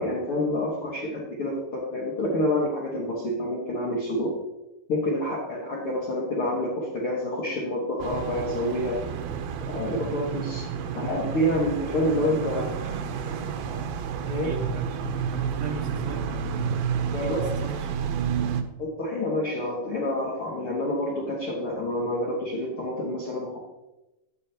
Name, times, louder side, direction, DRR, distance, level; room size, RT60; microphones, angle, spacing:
voice 1, 0.0-4.3 4.9-9.0 9.7-12.7 14.3-14.5 17.1-17.4 18.8-23.6, left 1 dB, 50° left, -4 dB, 1.8 m, -28 dB
sound 1, 8.0-18.6, right 7 dB, 80° right, 2.5 m, -30 dB
voice 2, 12.4-13.5 14.3-18.2, right 2 dB, 60° right, 0 dB, 2.0 m, -36 dB
10.5 x 8.7 x 2.9 m, 0.98 s
omnidirectional pair, 4.4 m